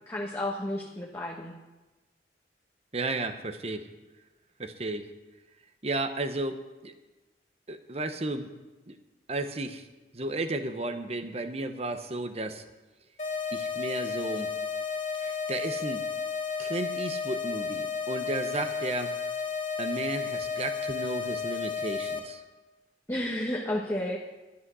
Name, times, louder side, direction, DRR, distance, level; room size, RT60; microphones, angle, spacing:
voice 1, 0.1-1.5 23.1-24.2, left 1 dB, 15° left, -4 dB, 1.3 m, -31 dB
voice 2, 2.9-3.8 4.6-5.1 5.8-6.9 7.7-8.5 8.9-9.0 9.3-9.9 10.1-12.6 13.5-14.5 15.2-16.0 16.6-19.2 19.8-22.4, right 2 dB, 35° right, 8 dB, 0.9 m, -33 dB
sound 1, 13.2-22.2, left 5 dB, 40° left, 2.7 m, -32 dB
12.5 x 11.5 x 6.2 m, 1.1 s
head